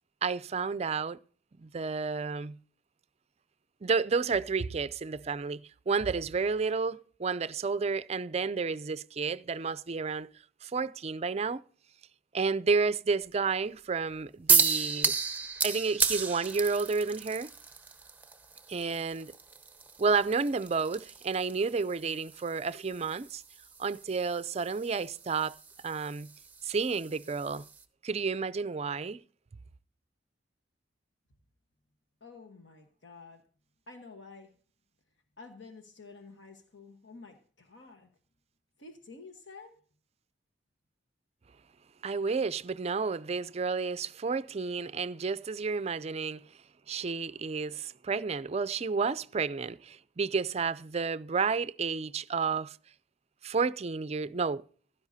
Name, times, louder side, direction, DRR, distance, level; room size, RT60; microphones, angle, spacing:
voice 1, 0.2-1.2 1.6-2.6 3.8-10.3 10.6-11.6 12.3-15.2 15.6-17.5 18.7-19.3 20.0-23.4 23.8-25.6 25.8-26.3 26.6-27.7 28.0-29.2 42.0-46.5 46.9-52.8 53.4-54.6, right 5 dB, 35° right, 0.4 m, -31 dB
sound 1, 14.5-27.8, right 5 dB, 10° right, 0.8 m, -33 dB
voice 2, 32.2-33.4 33.9-34.5 35.4-38.1 38.8-39.7, left 3 dB, 70° left, 1.2 m, -50 dB
16.0 x 12.0 x 2.7 m
head